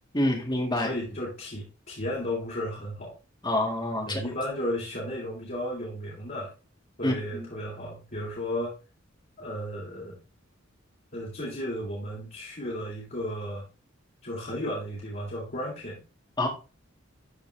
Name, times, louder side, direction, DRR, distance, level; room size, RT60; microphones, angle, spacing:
voice 1, 0.1-0.9 3.4-4.2 7.0-7.5 16.4-16.5, left 1 dB, 20° left, 1 dB, 2.2 m, -27 dB
voice 2, 0.7-3.1 4.1-6.5 7.0-8.7 9.4-10.2 11.1-13.6 14.2-16.0, left 1 dB, 50° left, -6 dB, 3.5 m, -34 dB
13.5 x 4.5 x 3.5 m, 0.32 s
head